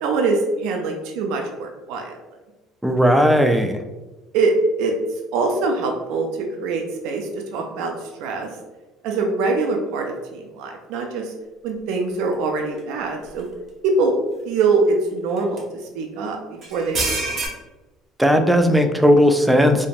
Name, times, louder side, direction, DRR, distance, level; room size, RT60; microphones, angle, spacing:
voice 1, 0.0-2.1 4.3-4.5 4.8-4.9 5.3-6.3 6.6-8.5 9.0-11.3 11.6-13.5 13.8-14.1 14.4-15.6 15.9-16.4 16.7-17.4, right 3 dB, 75° right, 2 dB, 0.4 m, -23 dB
voice 2, 2.8-3.8 18.2-19.9, equal, 5° right, 5 dB, 0.3 m, -16 dB
sound 1, 12.8-12.9 13.4-13.5 15.4-15.6 16.6-17.5, right 3 dB, 50° right, 0.8 m, -25 dB
3.3 x 2.1 x 2.4 m, 1.1 s
supercardioid pair, 90°, 0 cm